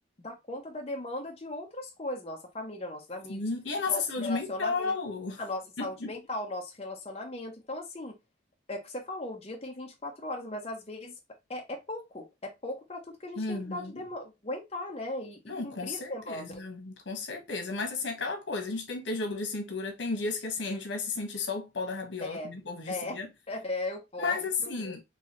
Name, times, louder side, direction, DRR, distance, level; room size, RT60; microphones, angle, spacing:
voice 1, 0.2-3.4 3.9-4.9 5.4-8.2 8.7-11.2 11.5-16.6 22.2-22.5 22.9-23.2 23.5-24.9, left 2 dB, 35° left, 0.8 m, -38 dB
voice 2, 3.3-5.4 5.8-6.1 13.4-14.1 15.5-23.3 24.2-25.0, left 3 dB, 85° left, 1.2 m, -33 dB
4.7 x 2.4 x 2.9 m
head